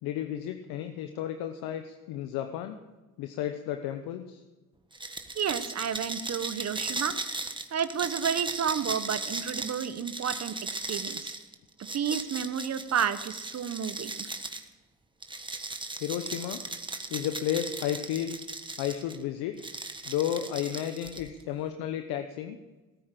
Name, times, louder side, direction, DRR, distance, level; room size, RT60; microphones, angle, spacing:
voice 1, 0.0-2.8 3.2-4.4 16.0-16.6 17.1-18.4 18.8-19.5 20.0-22.6, left 11 dB, 80° left, 8 dB, 1.0 m, -32 dB
sound 1, 4.9-14.7 15.2-19.2 19.6-21.4, right 2 dB, 15° right, 1.4 m, -37 dB
voice 2, 5.3-7.2 7.7-11.4 11.9-14.3, right 8 dB, 45° right, 13 dB, 1.1 m, -31 dB
18.0 x 9.7 x 7.6 m, 1.2 s
supercardioid pair, 80°, 36 cm